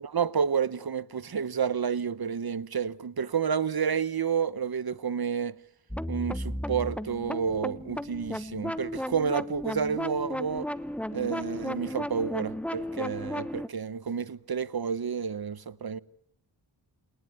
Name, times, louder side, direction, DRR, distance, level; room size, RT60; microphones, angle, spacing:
voice 1, 0.0-5.6 6.1-10.7 11.1-16.0, right 6 dB, 50° right, 1.0 m, -30 dB
sound 1, 5.9-13.7, equal, 5° left, 1.1 m, -34 dB
28.5 x 19.5 x 9.3 m
wide cardioid pair, 65°, 48 cm